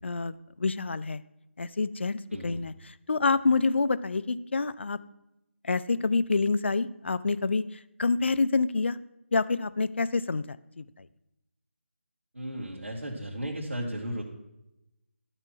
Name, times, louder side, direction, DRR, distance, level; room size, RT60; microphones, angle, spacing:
voice 1, 0.0-1.2 1.6-2.7 3.1-5.0 5.6-7.6 8.0-9.0 9.3-10.8, left 4 dB, 55° left, 15 dB, 0.4 m, -27 dB
voice 2, 2.3-2.6 12.3-14.2, equal, 70° right, -3 dB, 2.2 m, -35 dB
12.0 x 4.4 x 6.1 m, 0.88 s
figure-of-eight pair, 160°, 7 cm